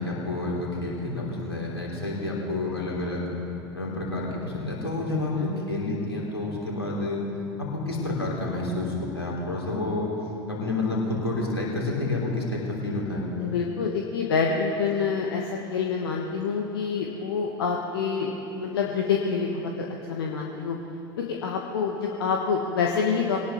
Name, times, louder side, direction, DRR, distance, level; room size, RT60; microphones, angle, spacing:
voice 1, 0.0-3.3 3.7-7.2 7.6-10.1 10.5-13.2, left 2 dB, 90° left, -3 dB, 3.2 m, -29 dB
voice 2, 13.4-20.8 21.2-23.4, left 5 dB, 70° left, 0 dB, 1.2 m, -27 dB
22.5 x 18.0 x 3.1 m, 3.0 s
figure-of-eight pair, 75°, 13 cm